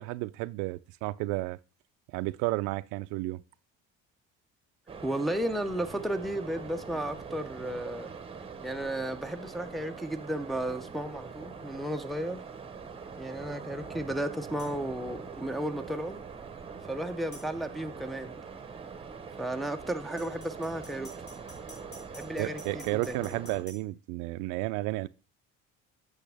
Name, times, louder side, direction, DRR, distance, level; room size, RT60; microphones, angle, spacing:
voice 1, 0.0-1.6 2.1-3.4 22.4-25.1, right 19 dB, 90° right, 0.5 m, -32 dB
sound 1, 4.9-23.6, right 5 dB, 20° right, 0.9 m, -43 dB
voice 2, 5.0-8.1 8.6-12.4 13.1-16.2 16.9-18.3 19.4-21.1 22.1-23.4, right 1 dB, ahead, 0.5 m, -34 dB
sound 2, 14.6-14.7 17.3-17.5 20.2-23.8, left 1 dB, 55° left, 4.5 m, -50 dB
8.4 x 6.8 x 3.4 m
cardioid pair, 135°, 29 cm